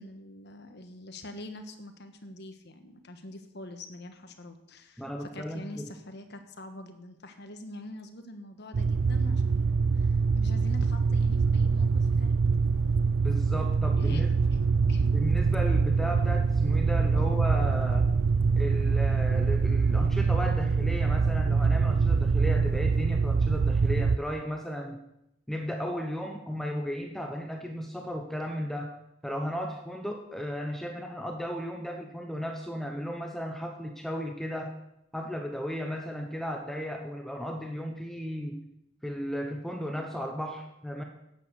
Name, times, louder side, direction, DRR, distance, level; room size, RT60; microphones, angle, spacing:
voice 1, 0.0-12.4 14.0-14.6 14.9-15.1 17.2-17.3, left 1 dB, 55° left, 7 dB, 1.4 m, -45 dB
voice 2, 5.0-5.9 13.2-14.3 15.1-18.1 18.6-25.0 25.5-29.0 29.2-34.8 35.1-38.6 39.0-41.0, equal, ahead, 3 dB, 0.8 m, -35 dB
sound 1, 8.7-24.2, right 4 dB, 70° right, 0.4 m, -24 dB
11.0 x 8.6 x 7.0 m, 0.84 s
head